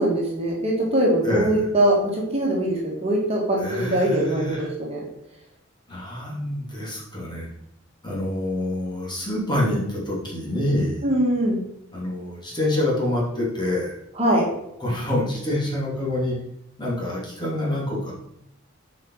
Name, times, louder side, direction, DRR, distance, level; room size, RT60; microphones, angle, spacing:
voice 1, 0.0-5.0 11.0-11.6 14.2-14.5, right 1 dB, 30° right, -2 dB, 2.0 m, -22 dB
voice 2, 1.2-1.6 3.6-4.7 5.9-7.5 8.0-11.1 11.9-13.9 14.8-16.3 16.8-18.1, left 1 dB, 25° left, -5 dB, 2.8 m, -26 dB
8.2 x 5.4 x 4.8 m, 0.80 s
head